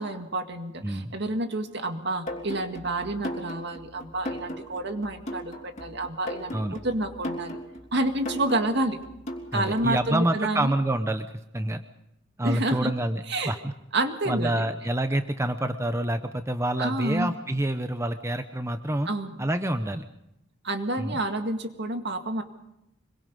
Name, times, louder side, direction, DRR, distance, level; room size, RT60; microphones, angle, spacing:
voice 1, 0.0-6.5 6.8-7.6 7.9-9.0 9.5-10.7 12.4-12.9 13.3-13.5 13.9-14.6 16.8-17.3 19.1-19.5 20.6-22.4, right 2 dB, 60° right, 6 dB, 2.0 m, -29 dB
voice 2, 0.8-1.1 6.5-6.8 9.5-11.3 11.5-11.8 12.4-13.7 14.3-19.1 19.4-20.0 21.0-21.2, right 1 dB, 15° right, 8 dB, 0.8 m, -27 dB
sound 1, 2.3-10.1, equal, 35° left, 3.2 m, -37 dB
25.5 x 22.5 x 5.4 m, 0.83 s
head